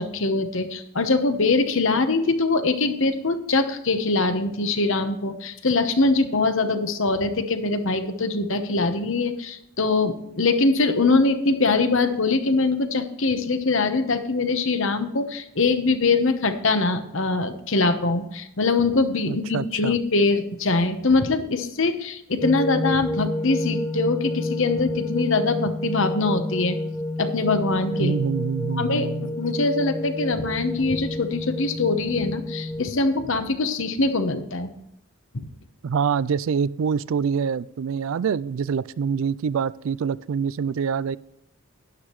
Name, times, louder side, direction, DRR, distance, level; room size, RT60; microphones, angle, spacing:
voice 1, 0.0-26.8 27.2-28.1 28.7-34.7 35.3-35.4, left 3 dB, 60° left, 9 dB, 1.0 m, -23 dB
voice 2, 19.3-20.0 28.0-29.3 35.8-41.2, right 6 dB, 60° right, 19 dB, 0.3 m, -25 dB
sound 1, 22.4-32.8, left 1 dB, 10° left, 0.9 m, -29 dB
12.0 x 10.0 x 3.1 m, 0.81 s
head